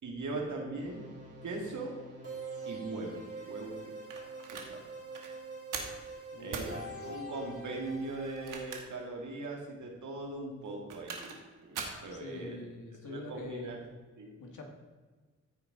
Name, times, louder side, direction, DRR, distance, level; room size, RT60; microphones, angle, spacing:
voice 1, 0.0-1.1 1.4-1.9 2.7-3.2 3.5-3.9 4.5-4.8 6.4-12.6 13.0-13.8 14.2-14.4, right 2 dB, 65° right, 0 dB, 2.2 m, -40 dB
sound 1, 0.8-8.5, right 2 dB, 50° right, 3.0 m, -45 dB
sound 2, 4.1-4.7 5.1-5.3 5.7-6.0 6.5-6.7 8.3-9.0 9.4-9.5 10.7-11.4 11.7-12.0, right 5 dB, 85° right, 1.3 m, -40 dB
voice 2, 6.3-7.2 12.1-13.8 14.4-14.7, left 2 dB, 70° left, 2 dB, 1.7 m, -45 dB
14.5 x 4.9 x 3.8 m, 1.3 s
cardioid pair, 55°, 31 cm